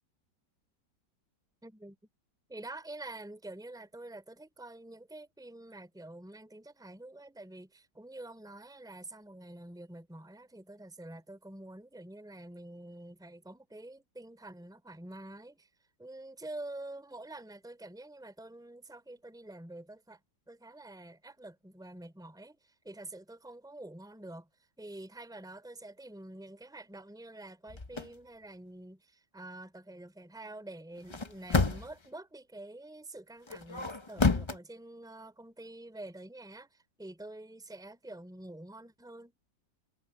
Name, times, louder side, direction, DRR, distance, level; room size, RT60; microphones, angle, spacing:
voice 1, 1.6-2.0 2.5-15.7 16.0-20.2 20.5-24.5 24.8-39.4, right 1 dB, ahead, 3.0 m, -47 dB
sound 1, 27.7-28.1 31.0-32.1 33.5-34.6, left 3 dB, 30° left, 0.5 m, -30 dB
omnidirectional pair, 2.0 m